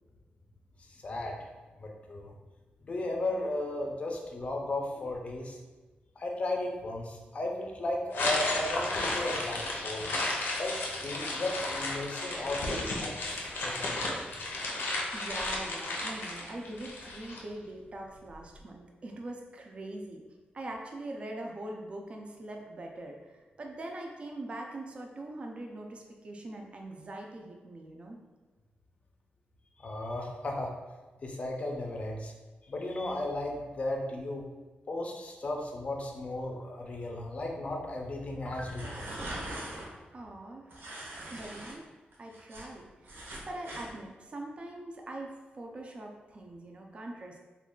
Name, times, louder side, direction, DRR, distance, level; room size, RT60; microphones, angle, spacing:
voice 1, 0.9-1.4 1.8-2.4 2.8-5.6 6.2-10.1 10.6-12.6 13.0-14.2 29.8-30.7 31.2-32.3 32.6-34.5 34.9-39.3, left 2 dB, 35° left, 1 dB, 0.5 m, -35 dB
sound 1, 8.1-17.4, left 2 dB, 90° left, 0.6 m, -33 dB
voice 2, 14.8-20.2 20.5-28.2 40.1-40.7 41.3-41.8 42.2-43.1 43.5-47.4, right 1 dB, 35° right, 1 dB, 0.4 m, -42 dB
sound 2, 38.5-39.9 40.7-41.7 42.1-43.9, right 1 dB, 75° right, 0.7 m, -41 dB
3.1 x 2.3 x 3.6 m, 1.2 s
wide cardioid pair, 170°, 3 cm